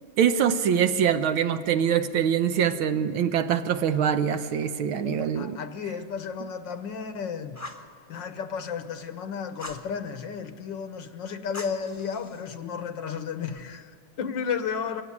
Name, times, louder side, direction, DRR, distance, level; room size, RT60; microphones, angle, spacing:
voice 1, 0.2-5.6, right 8 dB, 75° right, 9 dB, 1.6 m, -24 dB
voice 2, 5.0-7.6 8.1-15.0, left 6 dB, 65° left, 9 dB, 1.5 m, -33 dB
Fire, 7.5-7.9 9.6-9.9 11.5-12.5, left 1 dB, 10° left, 0.9 m, -41 dB
22.5 x 16.0 x 9.6 m, 2.2 s
omnidirectional pair, 2.4 m